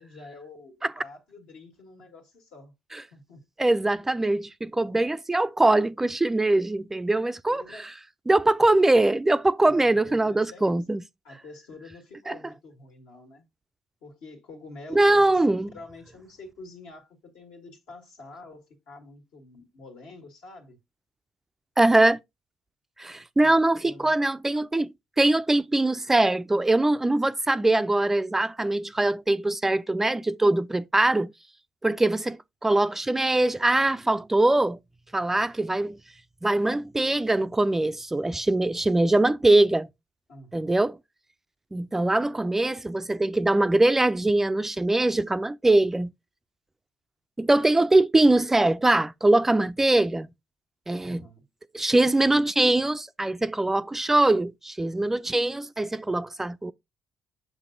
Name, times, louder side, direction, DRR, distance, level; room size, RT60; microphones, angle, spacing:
voice 1, 0.0-2.7 3.1-3.4 7.5-7.9 9.6-10.8 11.2-13.4 14.0-15.4 15.7-20.8 23.4-23.5 23.8-24.2 40.3-40.7 51.0-51.5, left 3 dB, 70° left, 1.7 m, -47 dB
voice 2, 3.6-7.9 8.3-11.0 12.3-12.4 14.9-15.7 21.8-22.2 23.0-31.3 31.8-34.8 35.1-36.0 36.4-39.9 40.5-41.0 41.7-46.1 47.4-50.3 50.9-51.2 51.7-56.7, right 2 dB, 15° right, 0.3 m, -22 dB
6.6 x 5.7 x 2.5 m
hypercardioid pair, 55°, 2 cm